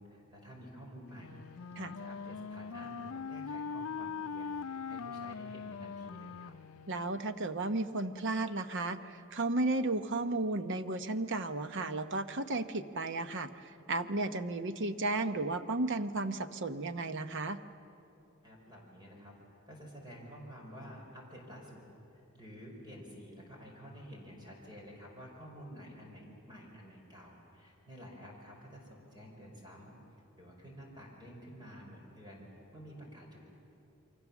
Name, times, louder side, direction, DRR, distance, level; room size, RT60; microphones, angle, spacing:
voice 1, 0.0-6.5 18.4-19.3 19.7-21.8 22.1-29.9 30.4-33.4, equal, 20° right, -1 dB, 5.0 m, -51 dB
Wind instrument woodwind instrument, 1.2-7.3, left 5 dB, 85° left, 0.5 m, -41 dB
voice 2, 6.9-13.5 13.9-17.6, right 2 dB, 60° right, 10 dB, 0.9 m, -34 dB
28.5 x 24.0 x 7.2 m, 2.7 s
head